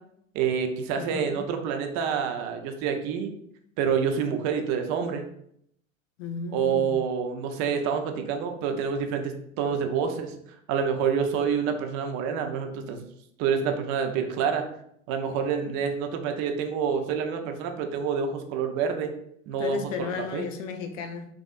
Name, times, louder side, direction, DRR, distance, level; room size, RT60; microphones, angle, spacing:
voice 1, 0.3-3.3 3.8-5.2 6.5-10.4 10.7-13.1 13.4-14.6 15.1-19.1 19.5-20.4, right 6 dB, 45° right, 5 dB, 0.7 m, -27 dB
voice 2, 1.0-1.3 6.2-7.0 15.6-15.8 19.6-21.3, left 5 dB, 70° left, 7 dB, 0.7 m, -34 dB
6.1 x 2.6 x 2.4 m, 0.72 s
hypercardioid pair, 90°, 40 cm